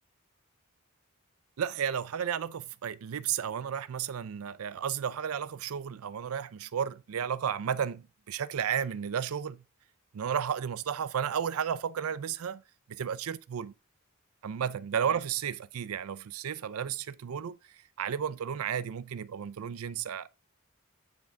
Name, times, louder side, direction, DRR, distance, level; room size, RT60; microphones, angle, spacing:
voice 1, 1.6-9.6 10.1-12.6 12.9-13.7 14.4-20.3, right 8 dB, 85° right, 0.4 m, -33 dB
9.3 x 3.7 x 4.5 m
head